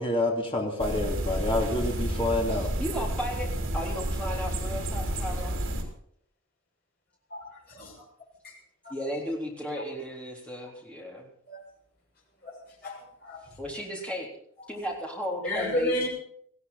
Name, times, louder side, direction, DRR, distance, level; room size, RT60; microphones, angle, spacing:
voice 1, 0.0-2.7, left 1 dB, 25° left, 0 dB, 2.9 m, -28 dB
sound 1, 0.8-5.8, right 1 dB, 70° right, 3.4 m, -30 dB
voice 2, 2.8-5.6 8.9-11.3 13.6-14.3 14.7-16.1, equal, 5° left, -2 dB, 3.8 m, -35 dB
voice 3, 7.3-8.0 8.4-8.5 8.8-8.9 11.5-11.6 12.4-13.6 14.6-14.7 15.4-16.1, left 1 dB, 50° left, -3 dB, 6.6 m, -33 dB
19.0 x 15.5 x 4.2 m, 0.67 s
head